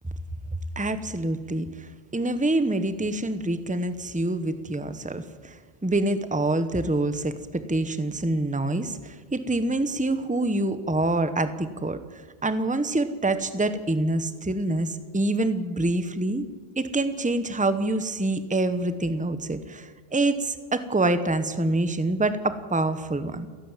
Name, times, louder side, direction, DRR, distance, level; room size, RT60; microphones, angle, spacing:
voice 1, 0.8-12.0 12.4-16.4 16.8-23.5, right 2 dB, 5° right, 11 dB, 0.9 m, -26 dB
29.5 x 11.5 x 9.0 m, 1.5 s
omnidirectional pair, 1.3 m